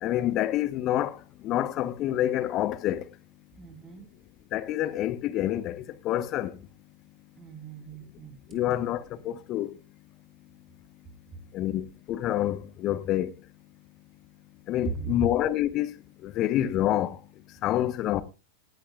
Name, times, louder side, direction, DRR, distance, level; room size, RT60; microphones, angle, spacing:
voice 1, 0.0-3.1 4.5-6.6 8.5-9.7 11.5-13.3 14.7-15.9 16.2-17.2 17.6-18.2, left 13 dB, 35° left, 0.9 m, -27 dB
voice 2, 3.5-4.1 7.4-8.8 14.8-15.1, right 6 dB, 20° right, 3.0 m, -39 dB
18.5 x 10.5 x 2.3 m
figure-of-eight pair, 90°, 0 cm